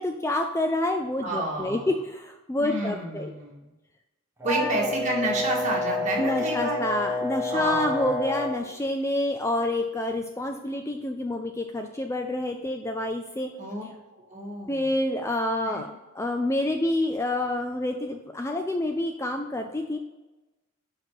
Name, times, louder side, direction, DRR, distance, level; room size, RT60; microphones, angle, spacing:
voice 1, 0.0-3.3 4.4-4.9 6.2-13.5 14.7-15.9 16.1-20.0, left 1 dB, 15° left, 4 dB, 0.3 m, -28 dB
voice 2, 1.2-1.9 2.6-3.6 4.4-6.8 7.5-8.2 13.6-13.8 14.2-14.9 15.7-15.9, right 1 dB, 35° right, -2 dB, 1.8 m, -30 dB
Brass instrument, 4.4-8.6, left 2 dB, 10° right, 1.4 m, -29 dB
6.0 x 5.0 x 4.6 m, 1.1 s
head